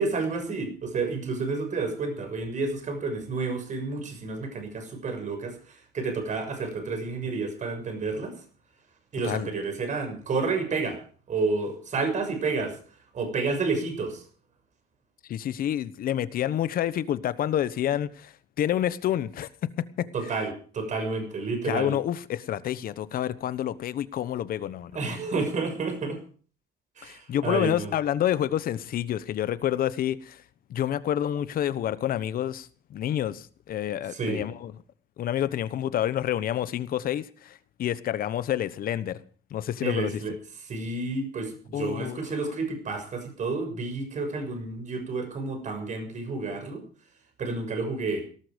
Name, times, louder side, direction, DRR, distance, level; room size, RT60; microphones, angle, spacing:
voice 1, 0.0-8.3 9.1-11.0 11.3-12.8 13.1-14.2 20.1-21.9 24.9-26.2 27.0-27.9 34.1-34.4 39.8-40.3 40.6-46.8 47.4-48.2, right 3 dB, 45° right, 6.5 m, -30 dB
voice 2, 15.3-19.5 19.8-20.1 21.7-25.0 27.0-30.4 30.7-34.7 35.2-39.2 39.5-40.2 41.7-42.2, left 11 dB, 60° left, 1.1 m, -28 dB
18.0 x 13.0 x 5.2 m
cardioid pair, 110°, 17 cm